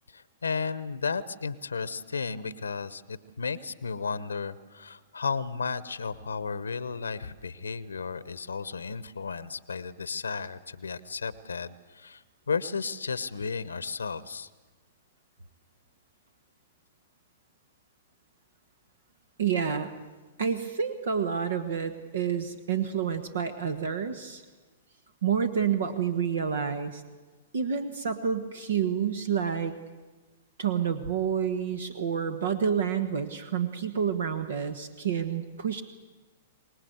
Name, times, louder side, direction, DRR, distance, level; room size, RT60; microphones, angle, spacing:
voice 1, 0.1-14.5, left 5 dB, 85° left, 16 dB, 0.9 m, -34 dB
voice 2, 19.4-19.9 20.4-24.4 25.2-27.0 27.5-29.7 30.6-35.8, right 7 dB, 70° right, 10 dB, 1.4 m, -29 dB
25.0 x 20.0 x 8.1 m, 1.2 s
hypercardioid pair, 110°, 0 cm